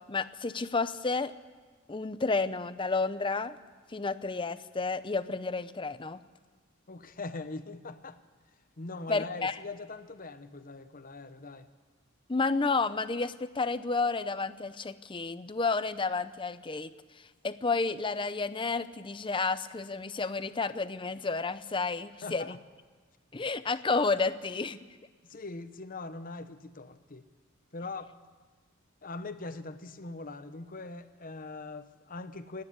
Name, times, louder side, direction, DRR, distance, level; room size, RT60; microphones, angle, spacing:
voice 1, 0.1-1.3 1.9-3.6 3.9-6.2 9.1-9.6 12.3-16.9 17.2-22.6 23.3-24.8, left 4 dB, 25° left, 13 dB, 0.7 m, -31 dB
voice 2, 6.9-8.2 8.8-11.7 22.2-22.6 25.2-27.3 27.7-28.2 29.0-32.6, left 3 dB, 40° left, 10 dB, 1.0 m, -41 dB
29.0 x 9.8 x 9.8 m, 1.5 s
head